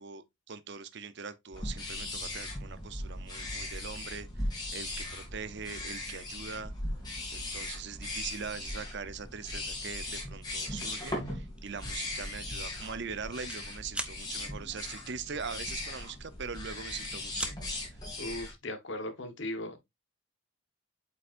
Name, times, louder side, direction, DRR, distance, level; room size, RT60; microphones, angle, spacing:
voice 1, 0.0-6.7 7.3-17.7, right 5 dB, 55° right, 0.6 m, -42 dB
sound 1, 1.5-18.5, left 1 dB, 20° left, 2.4 m, -38 dB
sound 2, 11.6-11.8 12.3-12.5 12.7-13.6 13.9-14.2 15.7-16.5 16.9-17.6, right 1 dB, 5° right, 0.5 m, -39 dB
voice 2, 18.2-19.8, left 1 dB, 55° left, 1.2 m, -37 dB
8.0 x 5.2 x 2.5 m
head